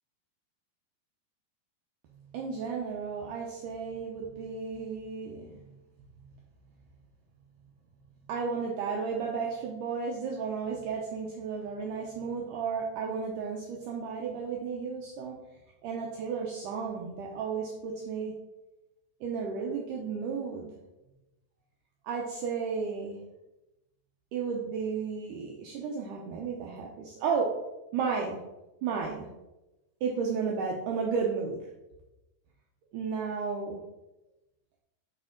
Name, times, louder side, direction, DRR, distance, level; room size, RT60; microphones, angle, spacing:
voice 1, 2.3-5.6 8.3-15.4 15.8-18.3 19.2-20.7 22.0-23.2 24.3-27.5 27.9-28.4 28.8-29.3 30.0-31.7 32.9-33.8, right 5 dB, 90° right, -1 dB, 1.8 m, -33 dB
6.6 x 5.2 x 3.7 m, 0.98 s
omnidirectional pair, 4.6 m